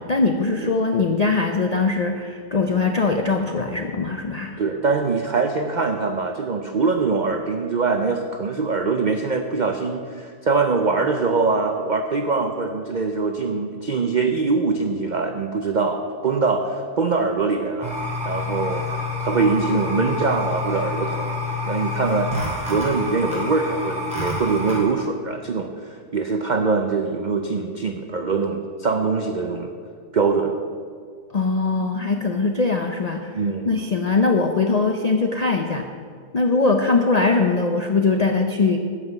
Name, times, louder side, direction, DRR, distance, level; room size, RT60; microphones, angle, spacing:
voice 1, 0.0-4.6 31.3-35.9 36.3-38.8, left 3 dB, 65° left, 4 dB, 0.4 m, -21 dB
voice 2, 4.6-18.0 18.3-22.3 22.7-29.7 30.1-30.6 33.3-33.8, right 4 dB, 75° right, 5 dB, 0.4 m, -23 dB
sound 1, 17.8-24.8, left 2 dB, 5° right, 2.9 m, -28 dB
11.0 x 5.7 x 8.1 m, 2.1 s
omnidirectional pair, 1.6 m